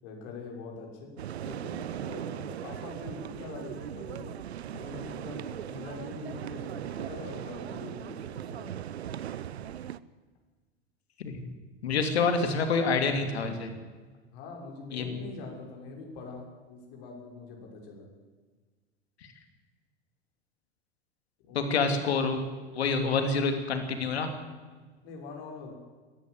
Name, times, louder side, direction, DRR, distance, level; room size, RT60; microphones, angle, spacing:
voice 1, 0.0-1.1 1.4-4.3 4.6-8.7 14.3-18.1 21.4-21.7 25.0-25.7, left 4 dB, 60° left, 0 dB, 6.4 m, -44 dB
sound 1, 1.2-10.0, right 10 dB, 80° right, 0.8 m, -38 dB
voice 2, 11.8-13.7 14.9-15.2 19.2-19.3 21.5-22.4 22.7-24.3, left 4 dB, 75° left, 6 dB, 3.1 m, -27 dB
22.0 x 14.0 x 8.3 m, 1.4 s
figure-of-eight pair, 85°, 32 cm